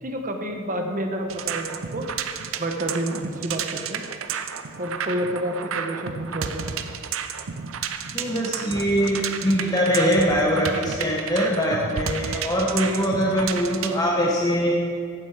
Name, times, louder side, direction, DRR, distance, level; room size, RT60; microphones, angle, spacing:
voice 1, 0.0-2.1 2.6-4.0 4.8-6.7, right 1 dB, 40° right, 4 dB, 1.2 m, -29 dB
sound 1, 1.3-14.0, right 7 dB, 85° right, 0.6 m, -32 dB
voice 2, 8.1-14.8, equal, 20° left, -2 dB, 1.0 m, -22 dB
16.0 x 7.8 x 4.9 m, 2.2 s
head